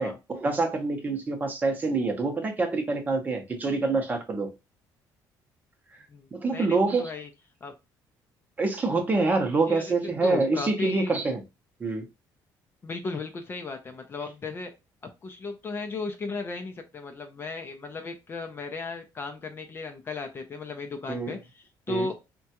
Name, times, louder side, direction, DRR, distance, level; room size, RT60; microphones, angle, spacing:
voice 1, 0.0-4.5 6.3-7.1 8.6-11.4 11.8-12.1 21.1-21.3 21.9-22.1, right 3 dB, 20° right, 0.7 m, -26 dB
voice 2, 6.5-7.3 7.6-7.7 9.7-9.9 10.2-11.1 12.8-14.7 15.2-22.1, left 3 dB, 30° left, 0.5 m, -35 dB
3.5 x 2.2 x 2.8 m
cardioid pair, 140°, 8 cm